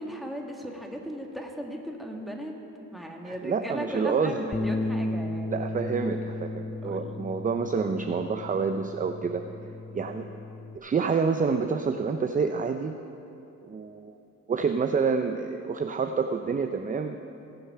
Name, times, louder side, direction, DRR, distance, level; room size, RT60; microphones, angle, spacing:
voice 1, 0.0-2.5 2.9-5.6 6.8-7.3 9.9-10.1, equal, ahead, 0 dB, 1.7 m, -37 dB
voice 2, 3.2-4.4 5.5-9.4 9.9-10.3 10.7-13.0 13.6-14.2 14.5-17.2, right 5 dB, 25° right, 6 dB, 0.5 m, -28 dB
Bass guitar, 4.5-10.8, left 2 dB, 15° left, 0.6 m, -34 dB
19.5 x 6.7 x 5.7 m, 2.8 s
cardioid pair, 90°, 30 cm